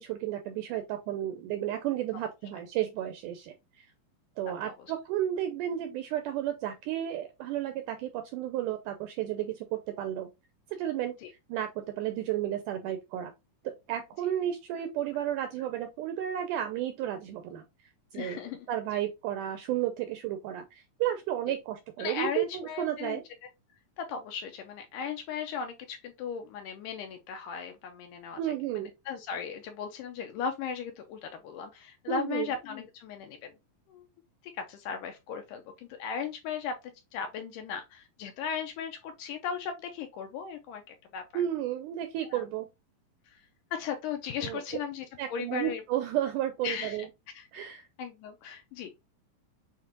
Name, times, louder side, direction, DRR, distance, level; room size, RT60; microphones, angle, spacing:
voice 1, 0.0-3.9 4.4-10.3 10.7-11.2 11.5-13.3 13.6-17.6 18.1-18.4 18.7-23.2 28.4-28.9 32.1-32.5 41.3-42.7 44.4-44.6 45.2-47.1 47.5-47.9, right 11 dB, 85° right, 1.8 m, -32 dB
voice 2, 18.1-18.7 22.0-23.2 24.0-28.4 28.7-33.5 33.9-34.1 34.5-36.7 37.1-41.4 42.3-42.4 43.3-43.5 43.7-45.8 46.6-47.0 47.4-47.5 48.0-48.9, left 7 dB, 80° left, 1.9 m, -37 dB
7.1 x 2.5 x 2.7 m
omnidirectional pair, 4.1 m